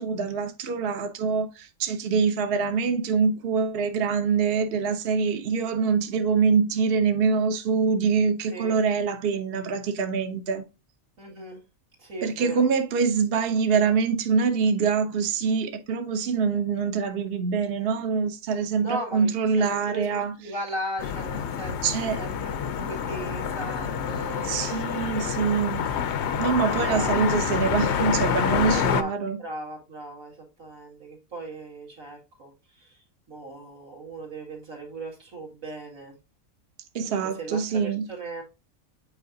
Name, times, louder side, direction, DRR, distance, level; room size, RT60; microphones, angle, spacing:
voice 1, 0.0-10.6 12.2-20.3 21.8-22.2 24.4-25.8 26.4-29.4 36.9-38.1, right 5 dB, 55° right, 0.8 m, -24 dB
voice 2, 11.2-11.6 12.0-12.6 18.8-24.8 26.6-27.3 28.6-29.1 29.4-33.0 33.3-36.2 37.3-38.4, right 2 dB, 70° right, 2.4 m, -37 dB
sound 1, 21.0-29.0, left 7 dB, 60° left, 0.8 m, -27 dB
8.4 x 4.7 x 2.6 m
omnidirectional pair, 1.5 m